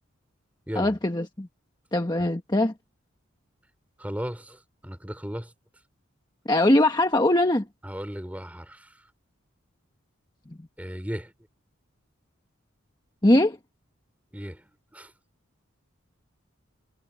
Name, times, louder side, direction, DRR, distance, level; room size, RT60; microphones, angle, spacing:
voice 1, 0.8-1.5 1.9-2.7 6.4-7.6 13.2-13.6, left 1 dB, 20° left, 1.3 m, -21 dB
voice 2, 4.0-5.5 7.8-9.1 10.8-11.3 14.3-15.1, equal, 5° right, 3.2 m, -36 dB
head